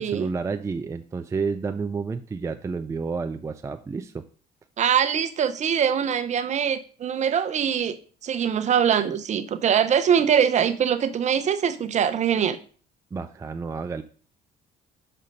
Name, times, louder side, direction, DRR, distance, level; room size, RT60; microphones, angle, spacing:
voice 1, 0.0-4.2 13.1-14.0, right 4 dB, 15° right, 7 dB, 0.4 m, -30 dB
voice 2, 4.8-12.6, right 8 dB, 45° right, 10 dB, 0.7 m, -23 dB
6.3 x 4.4 x 5.3 m, 0.42 s
cardioid pair, 110°, 17 cm